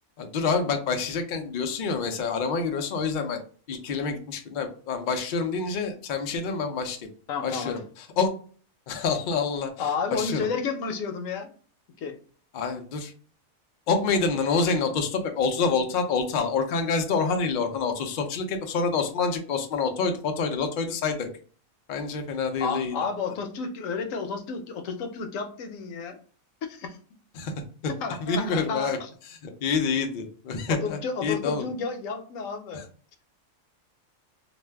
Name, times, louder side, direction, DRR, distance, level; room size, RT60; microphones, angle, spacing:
voice 1, 0.2-3.4 3.7-7.1 7.4-8.3 8.9-9.8 10.1-10.5 12.5-13.1 13.9-21.3 21.9-22.9 27.4-27.5 28.2-29.0 29.4-31.7 32.7-32.8, left 4 dB, 90° left, 5 dB, 0.4 m, -27 dB
voice 2, 7.3-7.8 9.8-11.5 12.0-12.2 22.6-26.2 26.7-27.0 28.0-29.1 30.7-32.9, left 5 dB, 75° left, 6 dB, 0.9 m, -31 dB
2.6 x 2.2 x 3.3 m, 0.42 s
omnidirectional pair, 1.5 m